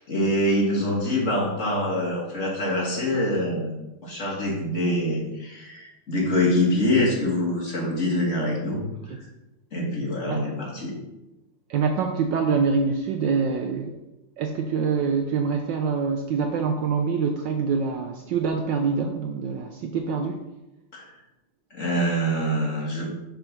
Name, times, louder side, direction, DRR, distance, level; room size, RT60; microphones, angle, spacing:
voice 1, 0.0-8.8 9.7-11.0 20.9-21.1 21.7-23.2, left 1 dB, 35° left, -3 dB, 1.8 m, -25 dB
voice 2, 11.7-14.0 14.4-20.4, right 5 dB, 75° right, 4 dB, 1.1 m, -25 dB
6.9 x 3.8 x 5.9 m, 0.99 s
omnidirectional pair, 2.4 m